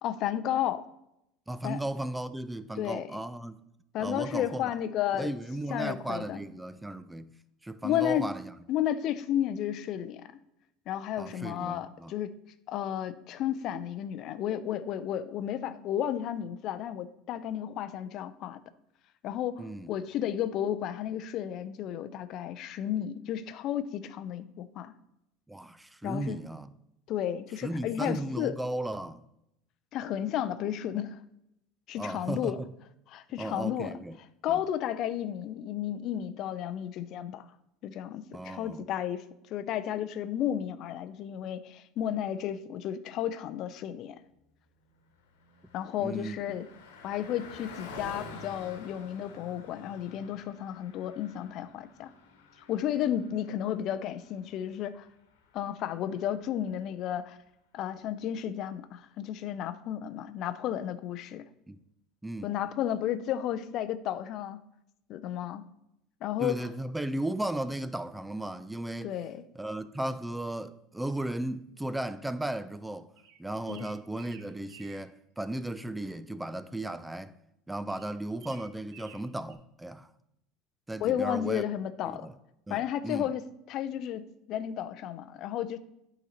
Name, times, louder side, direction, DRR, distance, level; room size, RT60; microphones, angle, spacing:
voice 1, 0.0-0.8 1.6-1.8 2.8-3.1 3.9-5.3 5.7-6.4 7.8-8.3 8.7-10.3 10.9-12.4 12.7-18.6 19.2-24.9 26.0-26.4 27.1-28.6 29.9-31.2 31.9-32.6 33.1-33.9 34.4-37.4 37.8-39.2 39.5-44.2 45.7-46.7 47.0-52.1 52.7-55.1 55.5-57.4 57.7-61.5 62.4-64.6 65.1-65.6 66.2-66.7 69.0-69.4 73.7-73.9 81.0-82.3 82.7-84.2 84.5-85.8, left 10 dB, 55° left, 0.4 m, -32 dB
voice 2, 1.5-3.6 4.0-4.7 5.2-7.4 7.6-8.5 11.2-12.1 19.6-19.9 25.5-26.7 27.6-29.3 32.0-32.7 33.4-34.2 34.5-34.6 38.3-38.8 46.0-46.4 61.7-61.8 62.2-62.5 66.4-69.1 69.6-73.1 73.4-77.4 77.7-80.1 80.9-81.6 82.1-82.3 82.7-83.3, right 1 dB, 10° right, 0.4 m, -35 dB
Car passing by, 44.9-56.7, left 3 dB, 80° left, 1.1 m, -50 dB
sound 1, 73.2-75.1 77.9-79.5, right 8 dB, 70° right, 0.8 m, -54 dB
9.0 x 3.9 x 4.2 m
hypercardioid pair, 85°, 0 cm